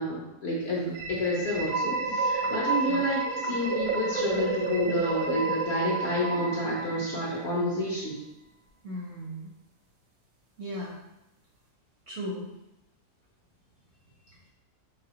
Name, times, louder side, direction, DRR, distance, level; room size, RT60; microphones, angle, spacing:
voice 1, 0.0-8.2, left 1 dB, 60° left, -5 dB, 0.7 m, -29 dB
sound 1, 0.9-7.7, right 3 dB, 85° right, 1.3 m, -30 dB
voice 2, 8.8-9.5 10.6-11.0 12.1-12.5, equal, 65° right, -3 dB, 0.7 m, -36 dB
4.0 x 3.1 x 2.8 m, 0.92 s
omnidirectional pair, 1.7 m